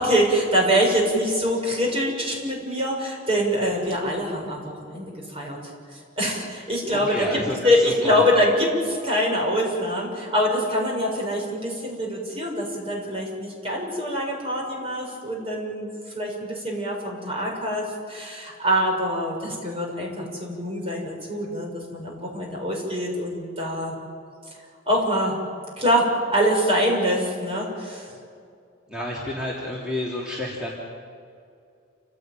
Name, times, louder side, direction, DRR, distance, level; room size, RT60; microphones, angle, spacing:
voice 1, 0.0-5.6 6.2-15.9 16.1-23.9 24.8-25.4 25.8-28.1, equal, 30° right, -1 dB, 6.6 m, -24 dB
voice 2, 6.9-8.3 28.9-30.7, left 1 dB, 5° right, -6 dB, 3.5 m, -30 dB
29.0 x 17.0 x 9.2 m, 2.4 s
head